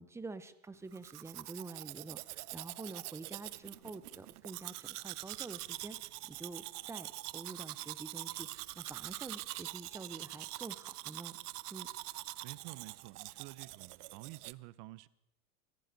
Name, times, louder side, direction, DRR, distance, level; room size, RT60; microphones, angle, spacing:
voice 1, 0.0-6.0 6.2-7.1 7.3-11.4 11.7-11.9, right 3 dB, 5° right, 0.7 m, -47 dB
Domestic sounds home sounds, 0.9-14.5, right 18 dB, 85° right, 0.6 m, -45 dB
voice 2, 12.4-15.1, right 19 dB, 45° right, 0.7 m, -50 dB
25.0 x 14.0 x 4.0 m
supercardioid pair, 125°, 44 cm